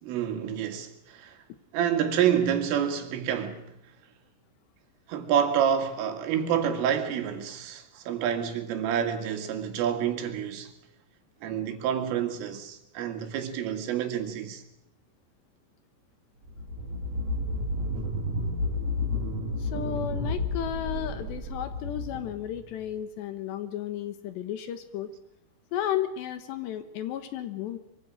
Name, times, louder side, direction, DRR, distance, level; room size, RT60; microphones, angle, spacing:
voice 1, 0.0-1.4 1.7-3.7 5.1-10.7 11.4-14.6, right 9 dB, 85° right, 4.7 m, -28 dB
sound 1, 16.4-22.9, left 2 dB, 40° right, 2.8 m, -31 dB
voice 2, 19.6-25.1 25.7-27.8, left 10 dB, 70° left, 3.1 m, -33 dB
24.5 x 24.0 x 6.4 m
omnidirectional pair, 5.7 m